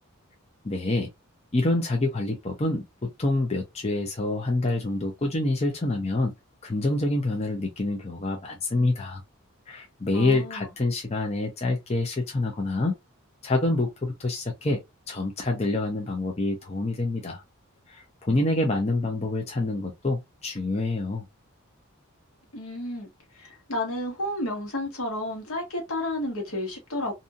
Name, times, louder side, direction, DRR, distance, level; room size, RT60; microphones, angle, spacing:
voice 1, 0.6-1.1 1.5-6.3 6.6-9.2 9.7-12.9 13.4-14.8 15.1-17.4 17.9-21.2, left 2 dB, 30° left, 0.5 m, -27 dB
voice 2, 10.1-10.7 22.5-23.1 23.3-27.2, left 1 dB, 75° left, 1.2 m, -31 dB
2.7 x 2.7 x 2.4 m
head